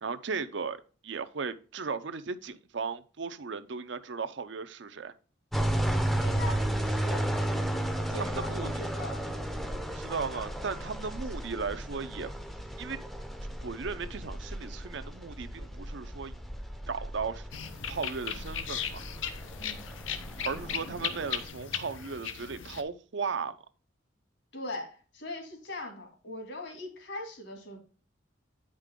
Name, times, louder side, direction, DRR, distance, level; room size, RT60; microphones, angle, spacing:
voice 1, 0.0-5.1 8.1-8.7 9.7-12.3 12.8-13.0 13.6-16.3 16.9-17.4 17.9-19.0 20.4-23.5, right 5 dB, 65° right, 0.6 m, -36 dB
sound 1, 5.5-21.4, right 1 dB, ahead, 0.6 m, -34 dB
voice 2, 6.2-7.3 8.1-9.2 19.6-19.9 24.5-27.8, left 1 dB, 65° left, 2.2 m, -40 dB
sound 2, 17.5-22.8, left 8 dB, 80° left, 0.8 m, -37 dB
9.1 x 5.2 x 3.6 m
head